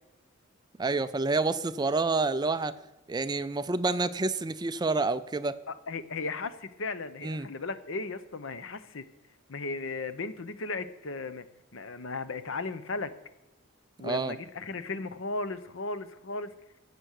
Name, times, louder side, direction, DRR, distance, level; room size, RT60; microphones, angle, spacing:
voice 1, 0.8-2.8 3.1-5.6 7.2-7.5 14.0-14.4, right 3 dB, 20° right, 13 dB, 0.4 m, -28 dB
voice 2, 5.7-9.1 9.5-11.4 11.7-13.1 14.0-16.5, left 3 dB, 65° left, 13 dB, 0.8 m, -36 dB
15.0 x 7.9 x 6.5 m, 1.0 s
head